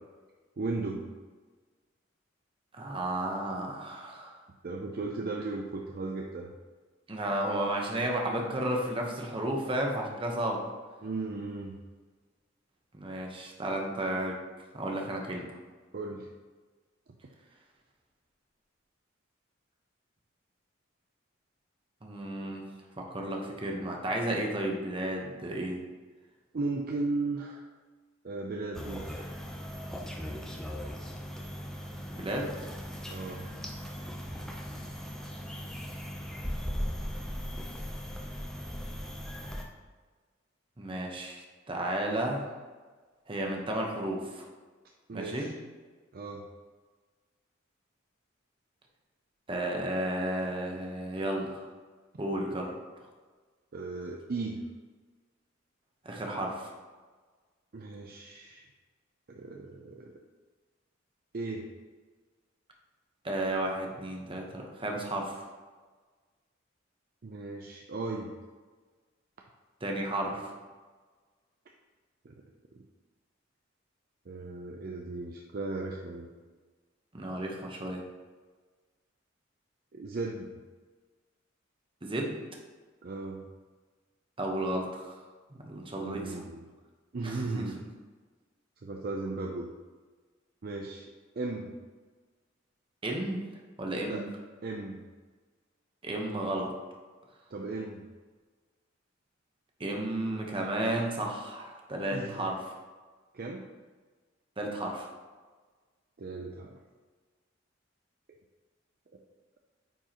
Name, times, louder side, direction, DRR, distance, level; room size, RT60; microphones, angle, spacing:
voice 1, 0.6-1.1 4.6-6.5 11.0-11.8 15.9-16.3 26.5-27.6 28.2-29.2 33.1-33.5 45.1-45.5 46.1-46.5 53.7-54.7 57.7-58.7 59.3-60.1 61.3-61.7 67.2-68.3 72.2-72.3 72.7-72.8 74.3-76.3 79.9-80.6 83.0-83.4 86.0-86.6 87.1-87.8 88.8-89.7 90.6-91.1 91.4-91.7 94.1-94.2 94.6-95.0 97.5-98.0 102.1-102.5 103.3-103.6 106.2-106.8, right 3 dB, 50° right, 1 dB, 0.5 m, -36 dB
voice 2, 2.7-4.4 7.1-10.7 12.9-14.4 14.7-15.6 22.0-22.7 23.0-25.8 32.1-32.5 40.8-42.5 43.3-44.5 45.1-45.5 49.5-51.7 52.2-52.8 56.0-56.7 63.2-65.5 69.8-70.5 77.1-78.0 82.0-82.4 84.4-85.2 85.6-86.4 87.2-87.9 93.0-93.4 93.8-94.2 96.0-96.7 99.8-102.7 104.6-105.1, right 1 dB, 25° right, 0 dB, 1.0 m, -33 dB
sound 1, 28.7-39.6, equal, 5° left, 0.6 m, -38 dB
9.0 x 4.7 x 3.0 m, 1.4 s
head